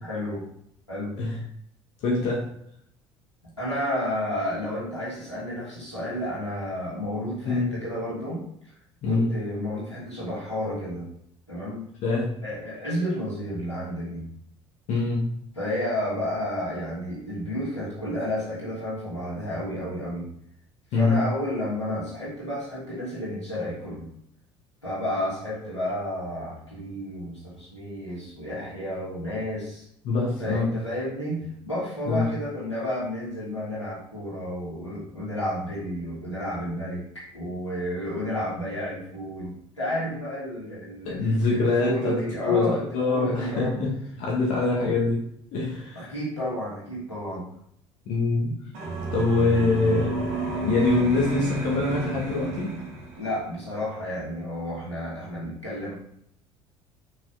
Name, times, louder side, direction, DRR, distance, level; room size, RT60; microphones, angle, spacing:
voice 1, 0.0-0.4 0.9-1.2 3.6-8.4 9.1-11.1 11.5-11.9 12.4-14.3 15.5-20.3 20.9-24.1 24.8-29.8 30.4-43.7 44.8-44.9 45.9-47.5 53.1-55.9, equal, 90° left, -8 dB, 2.8 m, -31 dB
voice 2, 2.0-2.5 7.4-7.7 9.0-9.3 12.0-12.3 14.9-15.3 20.9-21.2 30.0-30.7 32.1-32.3 41.1-43.9 44.2-45.2 45.5-46.1 48.1-48.5 49.1-50.2 50.6-52.8, left 3 dB, 55° left, -3 dB, 2.0 m, -24 dB
sound 1, 48.7-53.4, right 3 dB, 55° right, 2.5 m, -31 dB
6.3 x 6.2 x 4.1 m, 0.69 s
figure-of-eight pair, 60°, 14 cm